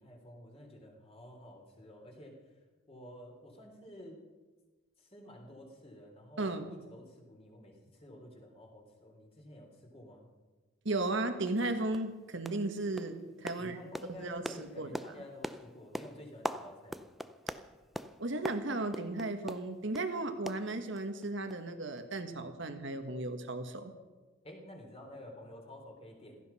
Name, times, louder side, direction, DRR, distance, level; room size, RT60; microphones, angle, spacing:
voice 1, 0.0-2.4 2.9-4.2 5.0-10.3 13.0-13.1 13.6-17.1 24.4-26.4, left 1 dB, 30° left, 1 dB, 3.5 m, -51 dB
voice 2, 6.4-6.8 10.8-13.1 13.4-13.8 14.1-14.9 18.2-23.9, right 2 dB, 65° right, 8 dB, 1.7 m, -35 dB
sound 1, 11.5-11.6 11.9-12.1 12.4-12.7 13.0-20.1 20.5-21.2 21.5-21.6 22.0-22.1, equal, ahead, 0.5 m, -43 dB
16.0 x 15.0 x 5.7 m, 1.3 s
head